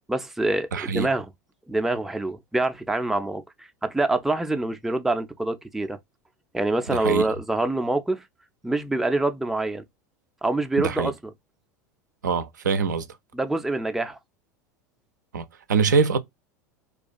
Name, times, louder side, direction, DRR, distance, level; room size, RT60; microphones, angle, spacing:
voice 1, 0.1-1.3 1.7-6.0 6.5-8.2 8.6-9.8 10.4-11.3 13.3-14.2, right 2 dB, 5° right, 0.3 m, -25 dB
voice 2, 0.7-1.1 6.9-7.3 10.8-11.1 12.2-13.1 15.3-16.2, right 5 dB, 75° right, 0.4 m, -24 dB
2.3 x 2.3 x 2.4 m
figure-of-eight pair, 80°, 10 cm